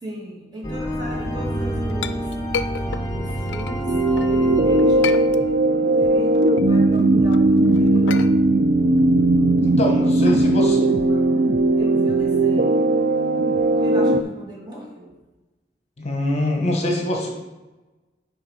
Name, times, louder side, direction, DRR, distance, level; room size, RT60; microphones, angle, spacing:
voice 1, 0.0-2.3 3.1-5.3 5.7-8.2 9.8-11.4 11.8-12.8 13.7-15.1, right 1 dB, 25° right, -4 dB, 2.2 m, -36 dB
sound 1, 0.6-5.8, equal, 20° left, 1.0 m, -28 dB
Chink clink, 1.5-4.4 4.8-5.8 6.2-10.3, left 7 dB, 90° left, 0.4 m, -33 dB
sound 2, 3.9-14.2, right 2 dB, 55° right, 0.4 m, -18 dB
voice 2, 9.6-10.8 16.0-17.3, left 1 dB, 40° left, 1 dB, 1.1 m, -24 dB
7.4 x 4.9 x 4.8 m, 1.1 s
head